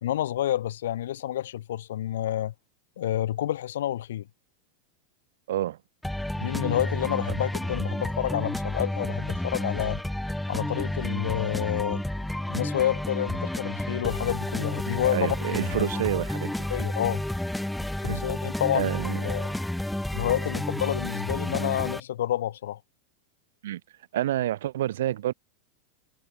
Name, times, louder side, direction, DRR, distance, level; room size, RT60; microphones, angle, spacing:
voice 1, 0.0-2.5 3.0-4.2 6.4-10.0 10.5-12.0 12.5-15.9 16.7-17.2 18.0-18.9 19.1-19.5 20.1-22.8, left 12 dB, 85° left, 1.2 m, -29 dB
voice 2, 5.5-5.8 15.1-16.5 18.0-18.2 18.7-19.2 23.6-23.8 24.1-25.3, right 13 dB, 75° right, 2.4 m, -28 dB
sound 1, 6.0-22.0, left 1 dB, ahead, 2.3 m, -31 dB
supercardioid pair, 155°, 0 cm